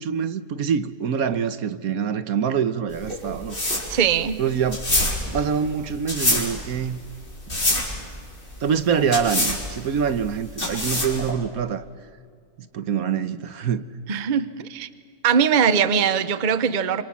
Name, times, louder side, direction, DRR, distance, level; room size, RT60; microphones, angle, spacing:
voice 1, 0.0-3.6 4.4-4.9 5.3-7.0 8.6-11.8 12.7-13.9, right 7 dB, 70° right, 1.3 m, -25 dB
sound 1, 2.9-11.3, left 1 dB, 35° left, 4.9 m, -26 dB
voice 2, 3.9-4.4 14.1-14.9 15.2-17.0, right 7 dB, 35° right, 0.9 m, -21 dB
26.5 x 25.5 x 7.2 m
omnidirectional pair, 1.7 m